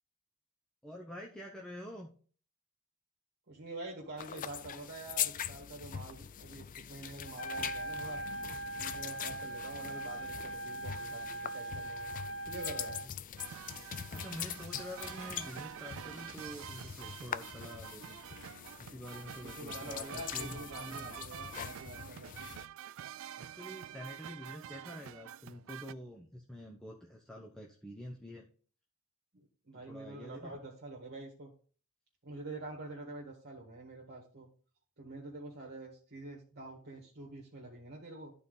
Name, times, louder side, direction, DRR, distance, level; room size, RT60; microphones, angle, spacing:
voice 1, 0.8-2.1 13.0-13.1 14.1-18.2 18.8-21.2 23.4-28.5 29.7-30.6, equal, 5° left, -1 dB, 0.9 m, -47 dB
voice 2, 3.5-8.2 8.7-12.1 12.4-13.0 19.4-22.5 29.3-31.5 32.2-34.5 35.0-38.3, right 2 dB, 50° right, -2 dB, 1.7 m, -46 dB
sound 1, 4.2-22.7, left 9 dB, 40° left, 0.4 m, -43 dB
Trumpet, 7.3-13.1, right 2 dB, 70° left, 1.5 m, -41 dB
sound 2, 13.4-25.9, right 10 dB, 65° right, 0.4 m, -47 dB
12.0 x 4.2 x 3.9 m, 0.42 s
head